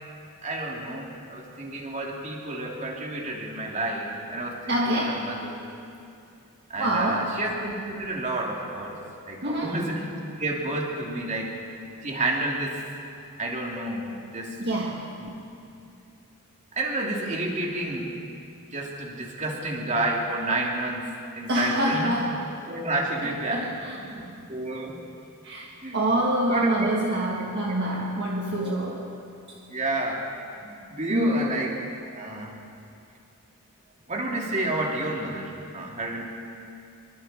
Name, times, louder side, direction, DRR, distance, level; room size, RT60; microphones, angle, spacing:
voice 1, 0.4-5.6 6.7-9.0 9.3-10.1 10.4-11.5 12.0-12.8 13.4-14.6 15.2-15.3 16.7-18.2 18.7-22.1 22.6-25.0 25.8-26.0 26.5-26.9 27.4-27.5 28.6-28.9 29.7-30.2 30.6-31.7 32.1-32.5 34.1-36.2, right 2 dB, 35° right, -2 dB, 3.2 m, -30 dB
voice 2, 4.7-5.3 6.8-7.4 9.4-9.9 14.6-15.1 21.5-22.5 23.2-24.1 25.4-25.7 25.9-29.1 31.1-31.6, right 1 dB, 50° right, -2 dB, 1.8 m, -26 dB
26.0 x 24.0 x 4.5 m, 2.6 s
head